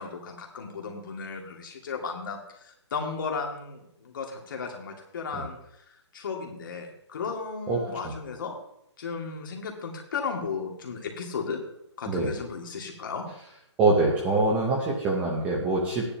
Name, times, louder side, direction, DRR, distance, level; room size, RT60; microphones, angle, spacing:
voice 1, 0.0-5.6 6.1-8.5 9.0-11.6 12.0-13.2, left 5 dB, 45° left, 2 dB, 2.2 m, -35 dB
voice 2, 13.8-16.0, right 3 dB, 10° right, -1 dB, 0.8 m, -24 dB
13.5 x 10.0 x 2.9 m, 0.76 s
hypercardioid pair, 170°, 15 cm